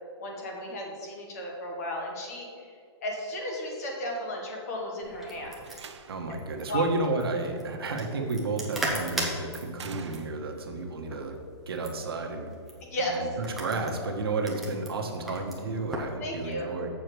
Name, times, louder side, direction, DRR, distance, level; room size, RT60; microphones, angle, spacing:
voice 1, 0.2-2.7 3.0-5.5 6.7-6.8 12.9-13.2 16.2-16.7, left 1 dB, 35° left, 0 dB, 1.5 m, -34 dB
sound 1, 5.0-16.1, right 2 dB, ahead, 0.6 m, -39 dB
Slam, 5.4-6.4 8.0-8.4 9.7-10.7, right 6 dB, 90° right, 0.8 m, -45 dB
voice 2, 6.1-11.3 11.7-12.5 13.1-16.9, right 3 dB, 60° right, 3 dB, 1.2 m, -31 dB
7.5 x 4.6 x 6.7 m, 2.3 s
hypercardioid pair, 175°, 14 cm